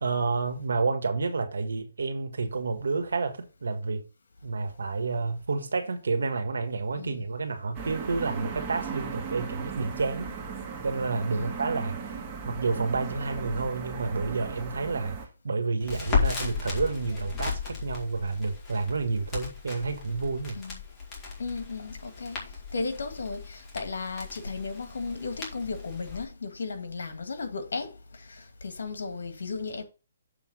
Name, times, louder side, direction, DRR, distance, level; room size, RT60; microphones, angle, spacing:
voice 1, 0.0-4.0 4.4-10.3 10.8-12.0 12.4-15.2 15.4-20.6, right 4 dB, 85° right, 1.7 m, -29 dB
voice 2, 6.9-7.2 11.3-11.6 20.5-20.8 21.4-22.5 22.7-29.8, left 4 dB, 80° left, 1.7 m, -35 dB
sound 1, 7.7-15.3, right 5 dB, 20° right, 1.9 m, -37 dB
Crackle, 15.8-26.2, left 5 dB, 20° left, 2.3 m, -35 dB
7.1 x 3.5 x 6.3 m
hypercardioid pair, 155°, 0 cm